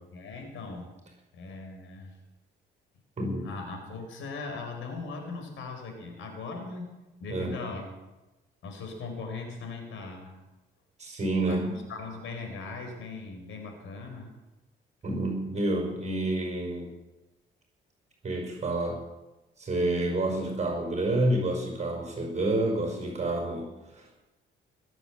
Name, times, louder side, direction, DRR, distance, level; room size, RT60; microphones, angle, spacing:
voice 1, 0.1-0.9 1.3-2.2 3.4-6.9 7.2-7.9 8.6-10.4 11.5-14.3, left 4 dB, 80° left, 4 dB, 4.5 m, -39 dB
voice 2, 3.2-3.5 7.3-7.6 11.0-11.8 15.0-16.9 18.2-19.0 19.6-24.3, right 2 dB, 35° right, 2 dB, 5.2 m, -29 dB
20.0 x 8.2 x 7.9 m, 1.1 s
cardioid pair, 90°, 20 cm